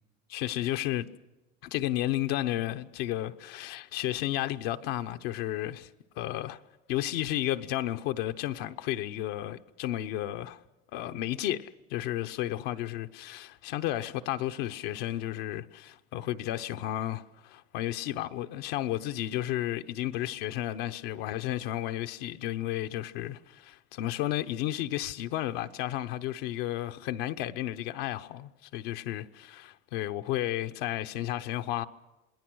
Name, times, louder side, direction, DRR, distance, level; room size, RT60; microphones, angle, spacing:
voice 1, 0.3-1.1 1.6-5.9 6.2-6.6 6.9-10.6 10.9-31.8, left 13 dB, 85° left, 1.0 m, -32 dB
27.5 x 20.5 x 6.3 m
cardioid pair, 125°, 29 cm